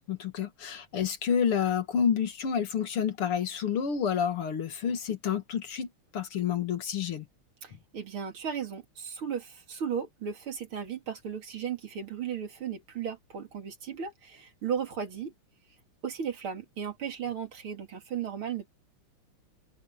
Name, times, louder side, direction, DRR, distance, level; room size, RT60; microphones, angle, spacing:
voice 1, 0.0-7.3, left 7 dB, 90° left, 2.8 m, -29 dB
voice 2, 7.6-15.3 16.0-18.7, right 7 dB, 70° right, 3.5 m, -35 dB
omnidirectional pair, 2.4 m